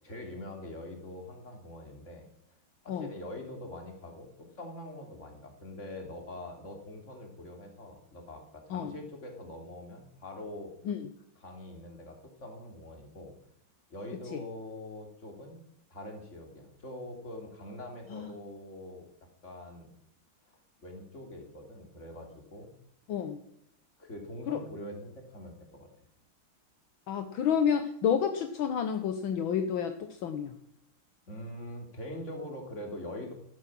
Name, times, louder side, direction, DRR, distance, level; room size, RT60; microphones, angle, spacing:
voice 1, 0.0-2.2 2.8-10.7 11.4-13.3 13.9-15.6 15.9-19.1 19.4-19.9 20.8-22.7 24.0-25.9 31.3-33.3, left 1 dB, 35° left, 3 dB, 3.2 m, -43 dB
voice 2, 23.1-23.4 24.5-24.6 27.1-30.6, left 8 dB, 75° left, 8 dB, 1.8 m, -30 dB
14.0 x 13.0 x 6.2 m, 0.72 s
omnidirectional pair, 2.3 m